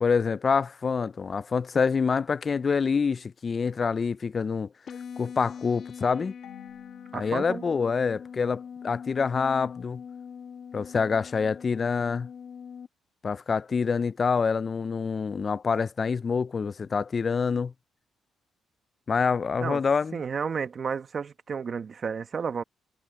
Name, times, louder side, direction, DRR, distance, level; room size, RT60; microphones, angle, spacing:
voice 1, 0.0-4.7 5.2-6.3 7.1-10.0 10.7-12.3 13.2-17.7 19.1-20.2, left 5 dB, 40° left, 0.4 m, -26 dB
sound 1, 4.9-12.9, left 7 dB, 55° left, 1.1 m, -42 dB
Marimba xylophone / Wood, 6.4-9.2, left 14 dB, 80° left, 2.9 m, -54 dB
voice 2, 7.1-7.6 19.6-19.8 20.1-22.6, right 6 dB, 45° right, 1.3 m, -32 dB
cardioid pair, 90°, 0 cm